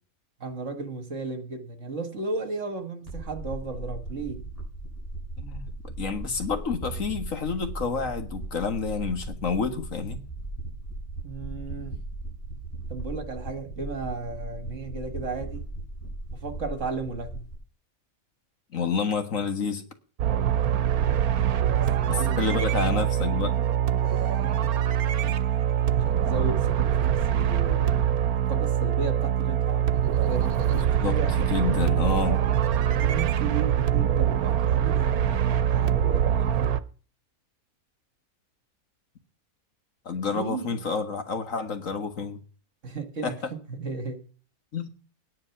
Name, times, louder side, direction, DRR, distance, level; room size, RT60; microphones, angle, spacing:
voice 1, 0.4-4.4 11.2-12.0 12.9-15.7 16.3-17.4 21.7-23.1 24.0-24.7 25.2-25.5 25.9-31.3 32.9-36.8 40.3-40.8 42.8-43.4 43.7-44.2, right 3 dB, 55° right, 1.9 m, -35 dB
sound 1, 3.1-17.5, right 2 dB, 25° left, 8.0 m, -37 dB
voice 2, 6.0-10.2 18.7-19.8 22.1-23.6 30.7-32.4 40.1-42.4 43.2-43.3 44.7-44.9, left 5 dB, 60° left, 1.9 m, -29 dB
sound 2, 20.2-36.8, right 10 dB, 80° right, 1.3 m, -24 dB
11.0 x 10.0 x 5.9 m
omnidirectional pair, 1.6 m